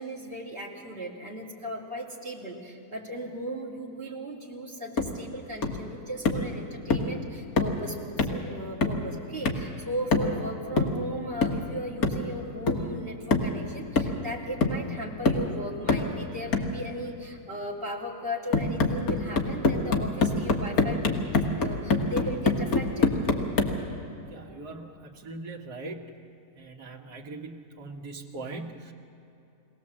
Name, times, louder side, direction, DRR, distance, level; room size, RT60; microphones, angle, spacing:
voice 1, 0.0-23.1, right 1 dB, 35° right, -3 dB, 2.9 m, -37 dB
sound 1, 5.0-5.2 5.6-5.9 6.2-6.5 6.9-7.1 7.6-7.8 8.2-8.4 8.8-9.1 9.4-9.7 10.1-10.4 10.8-11.0 11.4-11.7 12.0-12.3 12.7-12.9 13.3-13.6 14.0-14.3 14.6-14.9 15.2-15.5 15.9-16.1 16.5-16.8 18.5-23.8, left 3 dB, 65° left, 1.9 m, -25 dB
voice 2, 24.3-26.3 26.6-28.9, right 3 dB, 85° right, -1 dB, 1.9 m, -41 dB
23.0 x 17.5 x 7.4 m, 2.8 s
omnidirectional pair, 1.7 m